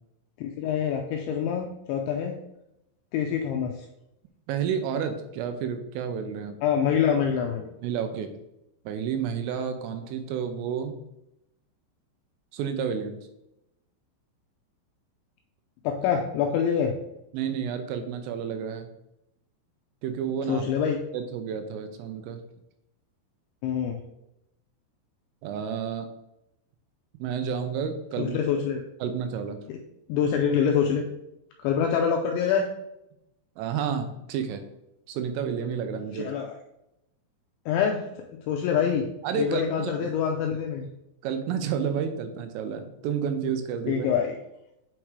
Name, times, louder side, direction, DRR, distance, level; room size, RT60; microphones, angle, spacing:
voice 1, 0.4-2.3 3.1-3.7 6.6-7.7 15.8-16.9 20.5-21.0 23.6-24.0 28.2-28.8 29.7-29.8 30.1-31.0 31.6-32.6 36.1-36.6 37.7-38.0 38.5-39.0 39.3-40.9 43.9-44.3, left 7 dB, 85° left, 2 dB, 2.6 m, -25 dB
voice 2, 4.5-6.6 7.8-8.3 8.9-11.0 12.5-13.2 17.3-18.9 20.0-20.7 21.1-22.4 25.4-26.1 27.2-28.4 29.0-29.6 33.6-34.6 35.1-36.3 39.2-39.9 41.2-44.1, right 7 dB, 85° right, 7 dB, 3.2 m, -30 dB
8.8 x 6.2 x 3.2 m, 0.84 s
omnidirectional pair, 6.0 m